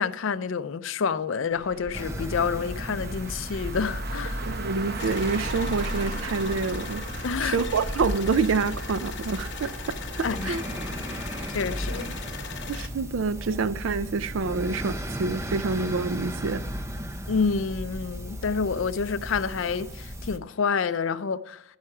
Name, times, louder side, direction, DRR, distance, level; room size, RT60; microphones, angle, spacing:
voice 1, 0.0-4.4 7.2-7.6 10.2-10.6 11.1-11.2 11.5-12.1 17.3-21.6, left 5 dB, 70° left, 0.5 m, -28 dB
Car, 1.5-11.0, right 3 dB, 50° right, 0.8 m, -40 dB
sound 1, 1.9-20.4, equal, 15° right, 0.6 m, -35 dB
voice 2, 4.4-10.6 12.7-16.6, right 4 dB, 70° right, 0.4 m, -27 dB
sound 2, 5.0-12.9, left 6 dB, 55° left, 1.0 m, -40 dB
14.5 x 5.6 x 4.8 m
head